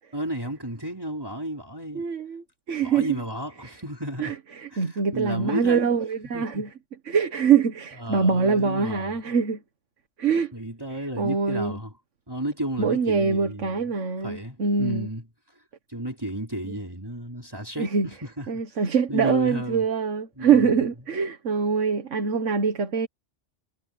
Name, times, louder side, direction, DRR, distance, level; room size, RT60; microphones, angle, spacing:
voice 1, 0.1-2.1 2.8-4.3 4.7-6.0 6.3-6.6 8.0-9.2 10.5-11.9 12.3-13.8 14.2-15.3 15.9-18.5 19.1-19.9 20.4-20.7, right 1 dB, 20° right, 4.4 m, -33 dB
voice 2, 1.9-3.1 4.2-6.7 7.1-9.6 10.2-10.5 11.2-11.8 12.8-15.1 17.8-18.1 18.5-23.1, right 6 dB, 90° right, 1.7 m, -24 dB
omnidirectional pair, 1.2 m